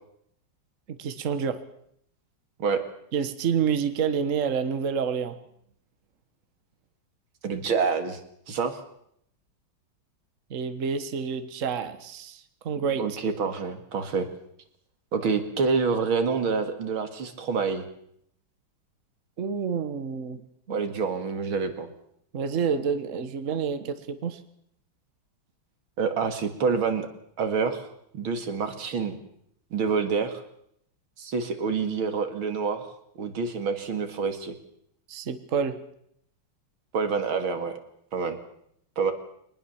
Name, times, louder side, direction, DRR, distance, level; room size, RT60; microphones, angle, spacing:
voice 1, 1.0-1.6 3.1-5.4 10.5-13.2 19.4-20.4 20.7-20.8 22.3-24.4 35.1-35.8, right 6 dB, 45° right, 11 dB, 1.5 m, -28 dB
voice 2, 7.4-8.2 8.5-8.8 13.0-14.3 15.1-17.9 20.7-21.9 26.0-27.1 27.4-27.8 28.1-29.2 29.7-30.4 31.2-32.9 33.2-34.6 36.9-37.7 38.1-38.4 39.0-39.1, right 5 dB, 90° right, 8 dB, 2.8 m, -27 dB
23.0 x 20.0 x 7.1 m, 0.72 s
omnidirectional pair, 2.2 m